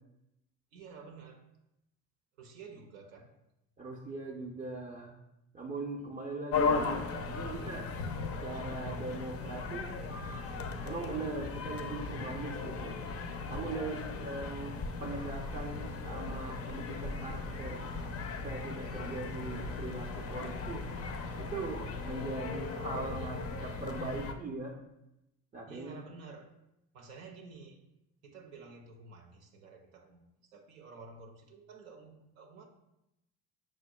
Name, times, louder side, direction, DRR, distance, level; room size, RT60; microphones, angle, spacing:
voice 1, 0.7-1.4 2.4-3.3 13.6-14.2 25.7-26.5 26.9-27.8 28.2-32.7, right 4 dB, 90° right, 2 dB, 0.6 m, -51 dB
voice 2, 3.8-5.2 5.5-7.9 8.4-9.9 10.8-13.0 13.5-17.9 18.4-20.9 21.4-24.7 25.5-26.0, right 3 dB, 20° right, -2 dB, 0.4 m, -40 dB
sound 1, 6.5-24.3, left 4 dB, 40° left, 0.4 m, -37 dB
sound 2, 15.0-24.2, left 2 dB, 85° left, 0.6 m, -47 dB
5.9 x 2.2 x 2.2 m, 0.87 s
hypercardioid pair, 60°, 40 cm